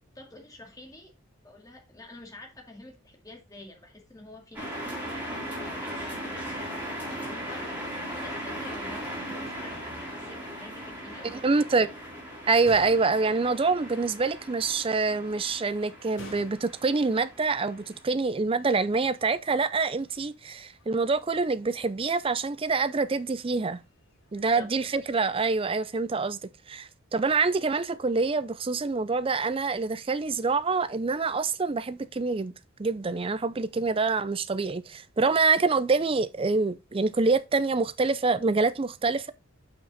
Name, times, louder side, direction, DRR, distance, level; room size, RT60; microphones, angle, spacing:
voice 1, 0.1-1.1 1.4-6.7 7.1-11.9 24.3-25.0, left 2 dB, 15° left, 2.1 m, -48 dB
sound 1, 4.5-18.0, equal, 10° right, 3.5 m, -38 dB
sound 2, 7.3-25.3, left 2 dB, 60° left, 2.8 m, -55 dB
voice 2, 11.4-11.9 12.5-23.8 24.3-26.4 26.7-32.5 32.8-39.3, right 4 dB, 25° right, 0.4 m, -26 dB
7.2 x 5.9 x 4.0 m
head